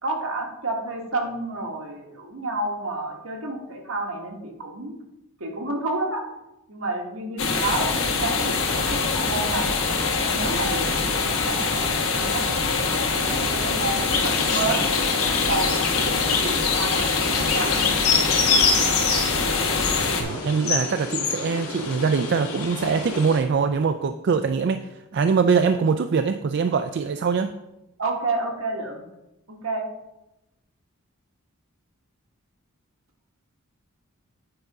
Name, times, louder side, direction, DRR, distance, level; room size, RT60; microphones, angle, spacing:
voice 1, 0.0-5.0 5.4-6.2 6.7-9.8 10.2-12.4 13.1-14.8 15.3-17.9 28.0-29.1 29.6-29.8, right 2 dB, 75° right, 1 dB, 1.6 m, -30 dB
sound 1, 7.4-20.2, left 4 dB, 70° left, 1.4 m, -24 dB
sound 2, 14.1-23.4, left 5 dB, 85° left, 1.7 m, -26 dB
voice 2, 20.2-27.5, right 5 dB, 50° right, 8 dB, 0.3 m, -23 dB
8.9 x 5.1 x 4.7 m, 0.92 s
head